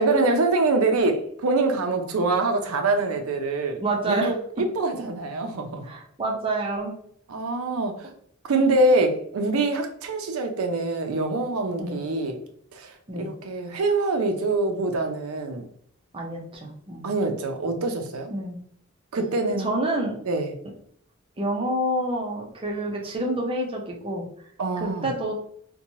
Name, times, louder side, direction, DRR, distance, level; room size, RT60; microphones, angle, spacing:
voice 1, 0.0-3.8 4.1-5.9 7.3-8.1 8.4-12.4 12.7-15.6 17.0-18.3 19.1-19.7 20.2-20.5 24.6-25.1, right 2 dB, 80° right, 5 dB, 0.5 m, -24 dB
voice 2, 3.8-4.3 5.8-6.9 11.8-12.0 13.1-13.3 16.1-17.1 18.3-18.6 19.6-20.2 21.4-24.2 24.8-25.3, right 1 dB, 25° right, -1 dB, 0.5 m, -28 dB
2.9 x 2.2 x 2.7 m, 0.65 s
head